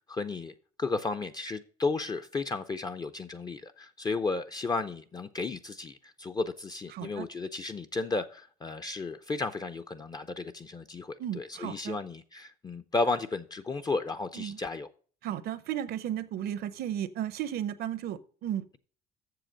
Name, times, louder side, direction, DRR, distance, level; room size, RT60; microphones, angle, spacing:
voice 1, 0.1-14.9, left 3 dB, 25° left, 8 dB, 0.5 m, -33 dB
voice 2, 6.9-7.3 11.2-12.0 14.3-14.6 15.2-18.6, right 10 dB, 70° right, 15 dB, 0.7 m, -34 dB
7.6 x 6.9 x 6.4 m, 0.43 s
cardioid pair, 110°, 17 cm